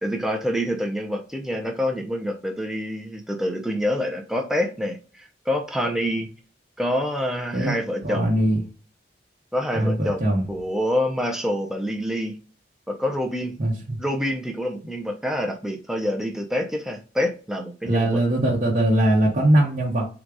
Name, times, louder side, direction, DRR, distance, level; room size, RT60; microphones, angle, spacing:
voice 1, 0.0-6.3 6.8-8.4 9.5-12.4 12.9-13.5 14.0-18.1, equal, ahead, 2 dB, 0.6 m, -27 dB
voice 2, 8.0-8.6 9.7-10.4 13.6-14.0 17.8-20.1, right 1 dB, 40° right, -6 dB, 0.9 m, -21 dB
3.9 x 2.4 x 4.7 m, 0.37 s
head